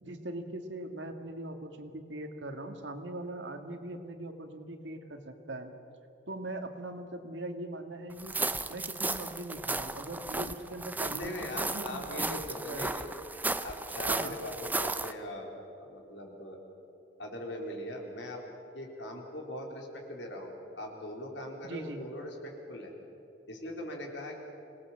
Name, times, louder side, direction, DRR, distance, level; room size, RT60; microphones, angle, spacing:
voice 1, 0.0-5.7 6.3-8.3 8.7-12.9 14.1-14.4 21.6-22.1, right 1 dB, 80° right, 6 dB, 2.0 m, -41 dB
sound 1, 8.2-15.1, right 3 dB, 10° right, 0.7 m, -34 dB
voice 2, 11.1-13.2 13.6-15.5 15.8-16.6 17.2-18.4 18.7-22.9 23.5-24.4, left 1 dB, 75° left, 1 dB, 4.2 m, -41 dB
26.5 x 19.0 x 7.4 m, 2.8 s
head